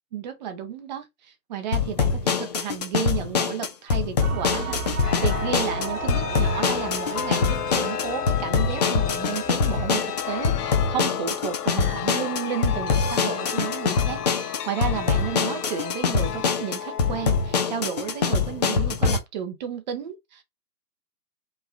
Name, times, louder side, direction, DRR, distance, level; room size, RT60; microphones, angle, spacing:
voice 1, 0.1-20.4, right 8 dB, 30° right, 0.7 m, -32 dB
sound 1, 1.7-19.2, left 5 dB, 25° left, 0.5 m, -24 dB
sound 2, 4.2-12.3, right 5 dB, 60° right, 1.0 m, -36 dB
Chime, 5.0-19.2, left 9 dB, 65° left, 0.7 m, -33 dB
4.6 x 3.2 x 2.5 m
figure-of-eight pair, 130°, 49 cm